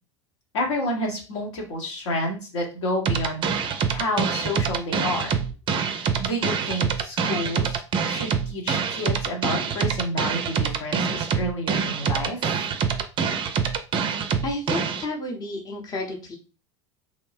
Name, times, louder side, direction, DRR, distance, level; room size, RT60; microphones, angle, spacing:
voice 1, 0.5-5.4 6.2-12.4, left 1 dB, 65° left, 0 dB, 1.1 m, -30 dB
sound 1, 3.1-15.1, right 6 dB, 30° right, 0.4 m, -25 dB
voice 2, 14.4-16.4, left 2 dB, 25° left, 0 dB, 0.8 m, -31 dB
2.7 x 2.0 x 3.3 m, 0.35 s
hypercardioid pair, 80°, 16 cm